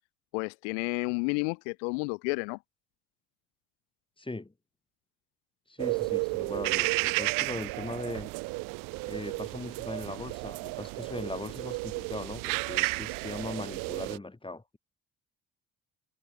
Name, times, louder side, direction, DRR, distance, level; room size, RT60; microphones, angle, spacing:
voice 1, 0.3-2.6, left 39 dB, 80° left, 3.0 m, -31 dB
voice 2, 4.2-4.5 5.7-8.3 9.0-14.8, left 2 dB, 15° left, 3.4 m, -39 dB
sound 1, 5.8-14.2, right 27 dB, 75° right, 0.8 m, -32 dB
hypercardioid pair, 50°, 34 cm